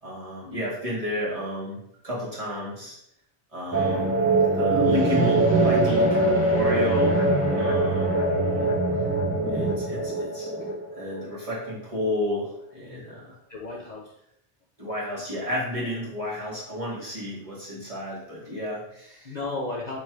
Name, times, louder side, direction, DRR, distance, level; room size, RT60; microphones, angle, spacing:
voice 1, 0.0-3.0 3.5-4.2 4.5-7.2 7.5-8.2 9.5-10.5 10.9-13.3 14.8-19.3, left 1 dB, 30° right, -6 dB, 1.5 m, -31 dB
sound 1, 3.7-11.7, right 2 dB, 15° right, 0.6 m, -22 dB
voice 2, 8.3-8.8 13.5-14.1 19.2-20.0, left 2 dB, 45° left, -3 dB, 0.7 m, -34 dB
3.5 x 3.1 x 4.5 m, 0.74 s
omnidirectional pair, 1.1 m